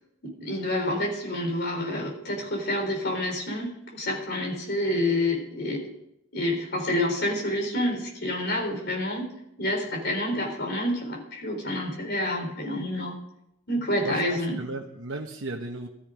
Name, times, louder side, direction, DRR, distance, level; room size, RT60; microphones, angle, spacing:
voice 1, 0.2-5.9 6.3-9.3 9.6-13.2 13.7-14.6, left 1 dB, 50° left, 1 dB, 3.9 m, -28 dB
voice 2, 14.0-15.9, right 2 dB, 70° right, -1 dB, 1.2 m, -35 dB
15.0 x 13.0 x 5.1 m, 0.81 s
head